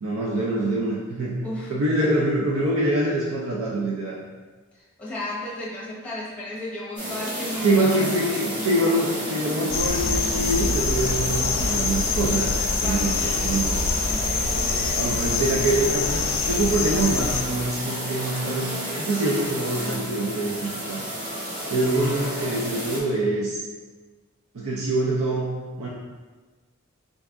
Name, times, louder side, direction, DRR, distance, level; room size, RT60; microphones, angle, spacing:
voice 1, 0.0-1.4 1.7-4.2 7.6-13.8 14.9-21.0 21.7-23.6 24.5-25.5 25.8-25.9, right 2 dB, 80° right, -5 dB, 0.5 m, -25 dB
voice 2, 4.7-8.6 12.8-13.6, left 1 dB, 5° left, -6 dB, 0.8 m, -34 dB
sound 1, 7.0-23.0, equal, 40° right, 1.1 m, -31 dB
sound 2, 9.7-17.4, left 4 dB, 65° left, 0.4 m, -25 dB
3.9 x 2.4 x 3.5 m, 1.3 s
head